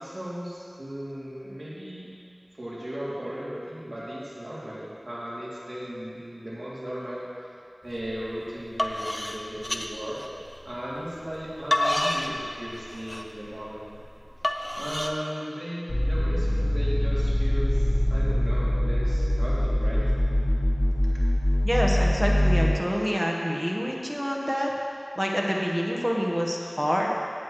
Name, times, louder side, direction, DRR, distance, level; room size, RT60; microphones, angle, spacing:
voice 1, 0.0-2.1 2.6-7.2 7.8-10.2 10.6-13.9 14.7-20.0, equal, 75° right, -8 dB, 2.7 m, -36 dB
sound 1, 8.0-8.2 8.6-10.7 11.3-15.1, left 1 dB, 20° left, 0.6 m, -29 dB
sound 2, 15.9-22.7, left 1 dB, 85° left, 1.0 m, -23 dB
voice 2, 21.6-24.7 25.2-27.1, equal, 10° right, -2 dB, 1.3 m, -27 dB
15.0 x 8.5 x 3.1 m, 2.4 s
wide cardioid pair, 45°, 0 cm